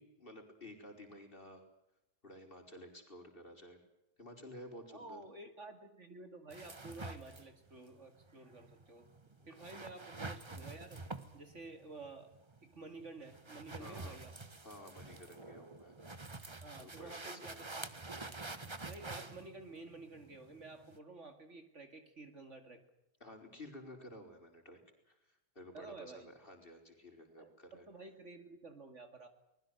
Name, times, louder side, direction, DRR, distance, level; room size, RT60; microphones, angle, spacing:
voice 1, 0.0-1.6 2.2-3.8 4.2-5.2 9.4-9.8 13.8-14.2 14.6-15.9 16.8-17.7 23.2-24.8 25.1-27.8, left 1 dB, 35° left, 4 dB, 5.1 m, -53 dB
voice 2, 4.9-9.1 9.5-11.1 11.3-12.4 12.6-14.3 16.6-18.0 18.8-22.8 25.7-26.3 27.4-29.3, right 3 dB, 45° right, 7 dB, 2.5 m, -51 dB
sound 1, 6.5-21.0, right 3 dB, 20° right, 1.2 m, -48 dB
24.5 x 20.5 x 7.8 m, 0.87 s
omnidirectional pair, 1.7 m